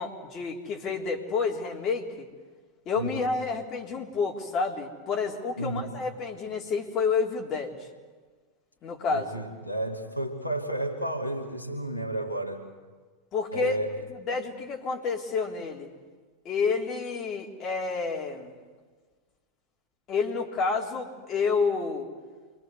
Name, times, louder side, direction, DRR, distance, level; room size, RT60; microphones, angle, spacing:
voice 1, 0.0-2.3 2.9-7.8 8.8-9.3 13.3-13.8 14.1-15.9 16.4-18.5 20.1-22.1, left 5 dB, 30° left, 0 dB, 3.9 m, -29 dB
voice 2, 3.0-3.3 5.6-6.0 9.1-12.7 13.5-14.0, right 1 dB, 85° left, 2 dB, 2.5 m, -32 dB
28.5 x 23.5 x 8.2 m, 1.4 s
figure-of-eight pair, 90°, 0 cm